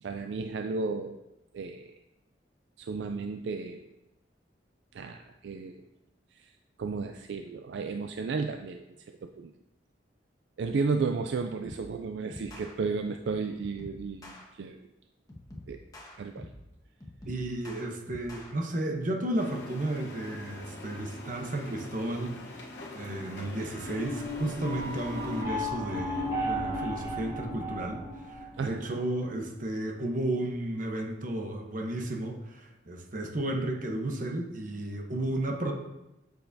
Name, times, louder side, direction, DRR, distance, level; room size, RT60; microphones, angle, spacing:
voice 1, 0.0-1.2 1.5-1.9 2.8-3.8 4.9-5.8 6.3-6.5 6.8-9.5 10.6-14.8 15.7-15.8 16.2-16.5 28.6-29.0, right 4 dB, 75° right, 6 dB, 0.4 m, -33 dB
sound 1, 11.6-11.9 12.3-12.7 13.6-14.4 15.3-16.7 17.0-18.5, left 1 dB, 20° left, 1.2 m, -46 dB
voice 2, 17.3-22.3 22.9-28.0 28.3-35.7, right 1 dB, 45° right, 2 dB, 1.0 m, -33 dB
sound 2, 19.3-25.4, left 2 dB, 70° left, 1.1 m, -44 dB
sound 3, 23.8-28.8, equal, 25° right, 2.7 m, -34 dB
7.6 x 6.6 x 2.7 m, 0.94 s
head